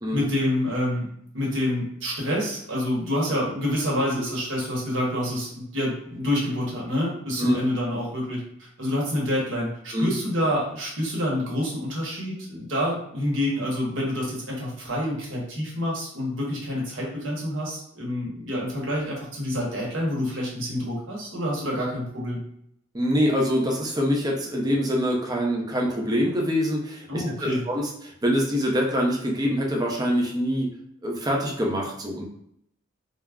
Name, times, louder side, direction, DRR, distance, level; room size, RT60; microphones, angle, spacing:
voice 1, 0.1-1.1 1.3-8.4 8.8-22.4 27.1-27.6, left 1 dB, 70° right, -3 dB, 1.0 m, -27 dB
voice 2, 22.9-30.7 31.0-32.2, equal, 20° right, -1 dB, 0.5 m, -25 dB
2.3 x 2.0 x 3.4 m, 0.71 s
head